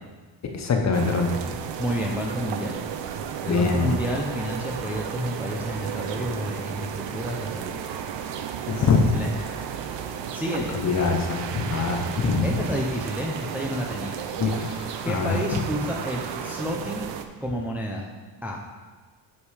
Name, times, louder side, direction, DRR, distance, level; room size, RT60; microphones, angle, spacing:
voice 1, 0.5-1.4 3.5-3.9 8.7-9.1 10.8-12.5 14.4-15.4, left 4 dB, 35° left, 3 dB, 0.8 m, -23 dB
sound 1, 0.9-17.3, right 8 dB, 60° right, 0.7 m, -33 dB
voice 2, 1.8-2.8 3.4-7.8 9.1-9.3 10.3-10.8 12.2-14.6 15.0-17.0 17.4-18.1 18.4-18.6, equal, 5° right, -1 dB, 0.6 m, -30 dB
8.3 x 5.1 x 4.9 m, 1.4 s
cardioid pair, 165°, 48 cm